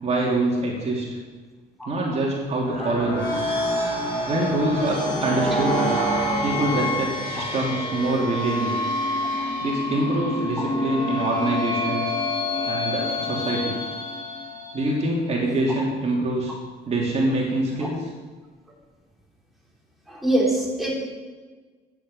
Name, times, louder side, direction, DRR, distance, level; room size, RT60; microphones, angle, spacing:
voice 1, 0.0-1.0 1.8-3.4 4.2-5.9 6.4-8.8 9.6-12.1 12.6-13.8 14.7-16.5 16.8-18.1, right 2 dB, 40° right, -3 dB, 3.2 m, -25 dB
sound 1, 2.5-15.1, left 1 dB, 30° left, 5.3 m, -27 dB
voice 2, 20.1-20.9, right 1 dB, ahead, -4 dB, 4.0 m, -23 dB
14.5 x 9.7 x 5.6 m, 1.4 s
cardioid pair, 110°, 17 cm